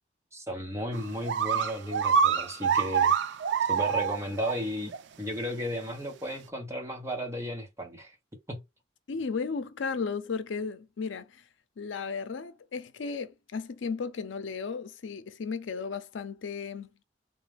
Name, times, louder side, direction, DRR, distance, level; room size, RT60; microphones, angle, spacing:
voice 1, 0.3-3.1 3.7-8.1 8.5-8.6, equal, 15° right, 1.0 m, -34 dB
sound 1, 0.9-1.0 1.3-4.5 4.9-5.0 5.8-5.9, right 7 dB, 75° right, 0.4 m, -25 dB
voice 2, 9.1-11.4 11.8-16.9, left 5 dB, 90° left, 0.5 m, -35 dB
3.7 x 2.4 x 3.3 m
head